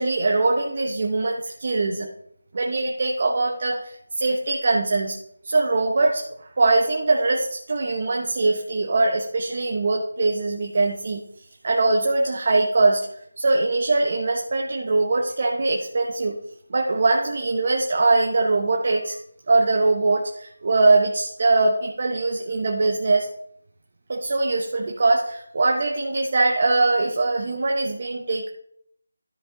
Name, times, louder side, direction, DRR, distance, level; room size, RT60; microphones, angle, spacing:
voice 1, 0.0-2.1 2.5-5.2 5.4-6.2 6.6-11.2 11.6-13.1 13.4-16.4 16.7-19.2 19.5-23.3 24.1-28.5, right 3 dB, 40° right, 1 dB, 0.9 m, -22 dB
13.0 x 5.1 x 3.8 m, 0.68 s
figure-of-eight pair, 175°, 0 cm